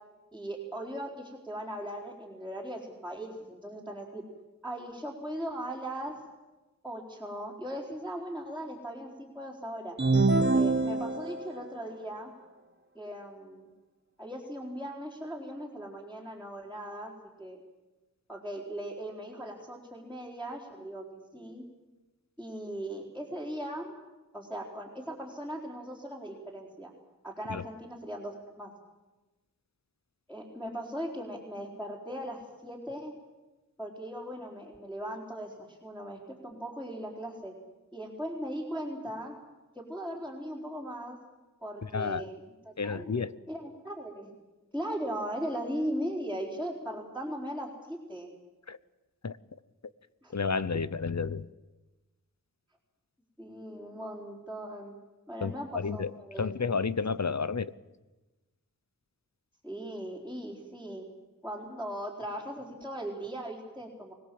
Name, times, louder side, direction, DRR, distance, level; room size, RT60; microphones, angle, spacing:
voice 1, 0.3-4.2 4.6-6.2 6.8-10.0 10.5-12.3 12.9-13.6 14.2-17.1 17.4-17.6 18.3-21.6 22.4-23.9 24.3-26.9 27.2-28.7 30.3-33.1 33.8-37.5 37.9-39.4 39.7-41.2 41.6-44.3 44.7-48.3 50.2-50.3 53.4-54.9 55.3-56.5 59.6-61.1 61.4-64.1, equal, 5° left, -5 dB, 4.4 m, -38 dB
sound 1, 10.0-11.6, right 3 dB, 30° right, 1.3 m, -25 dB
voice 2, 41.8-42.3 42.8-43.3 48.7-48.8 49.2-49.4 50.3-51.5 55.4-56.1 56.4-57.7, left 5 dB, 50° left, 16 dB, 0.8 m, -31 dB
25.0 x 18.5 x 7.8 m, 1.1 s
wide cardioid pair, 50°, 35 cm